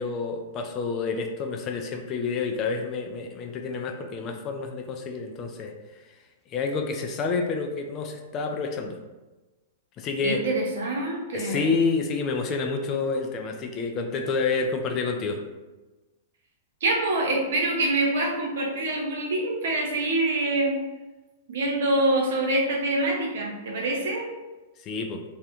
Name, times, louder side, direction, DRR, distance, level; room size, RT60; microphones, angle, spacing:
voice 1, 0.0-5.7 6.5-9.0 10.0-10.4 11.3-15.4 24.8-25.2, left 4 dB, 35° left, 4 dB, 0.3 m, -28 dB
voice 2, 10.2-11.7 16.8-20.8 21.5-24.2, right 2 dB, 70° right, 0 dB, 0.7 m, -25 dB
2.3 x 2.1 x 2.9 m, 1.1 s
hypercardioid pair, 110°, 0 cm